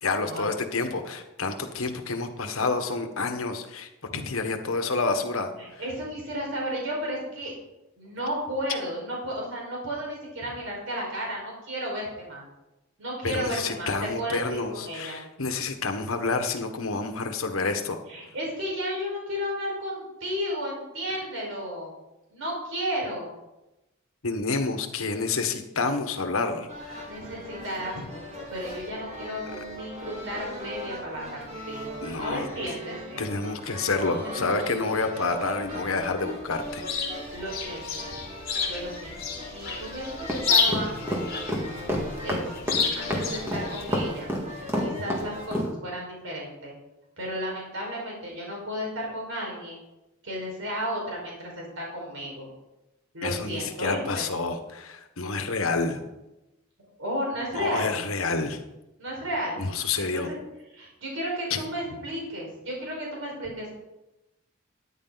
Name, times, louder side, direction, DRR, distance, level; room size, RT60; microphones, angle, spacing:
voice 1, 0.0-3.9 4.3-5.5 13.2-18.0 24.2-27.0 32.0-32.5 33.2-37.1 53.2-56.1 57.5-58.6 59.6-60.3 61.5-61.6, left 3 dB, 85° left, 6 dB, 1.3 m, -29 dB
voice 2, 5.6-7.5 8.0-12.5 13.0-15.2 18.1-21.9 22.3-23.3 27.1-33.2 34.2-34.4 37.3-38.0 38.7-39.2 39.5-41.2 42.2-42.7 43.0-46.7 47.2-49.8 50.2-52.5 53.1-54.3 57.0-58.0 59.0-59.6 60.0-60.4 60.7-63.7, equal, 75° right, -3 dB, 5.1 m, -33 dB
sound 1, 26.7-45.4, equal, 35° right, 3.8 m, -39 dB
Chirp tweet, 36.5-44.1, left 5 dB, 45° left, 3.2 m, -30 dB
sound 2, 40.3-45.7, equal, 10° right, 2.0 m, -28 dB
13.5 x 10.0 x 4.0 m, 0.97 s
head